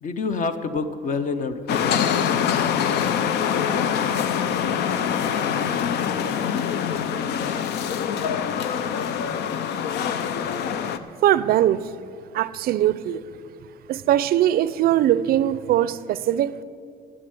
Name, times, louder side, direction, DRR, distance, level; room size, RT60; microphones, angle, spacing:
voice 1, 0.0-2.3, left 4 dB, 50° left, 10 dB, 0.9 m, -27 dB
sound 1, 1.7-11.0, left 8 dB, 80° left, 0.6 m, -24 dB
voice 2, 11.2-11.9 12.3-13.2 13.9-16.6, right 12 dB, 65° right, 17 dB, 0.4 m, -21 dB
9.9 x 7.9 x 9.5 m, 2.3 s
cardioid pair, 110°, 17 cm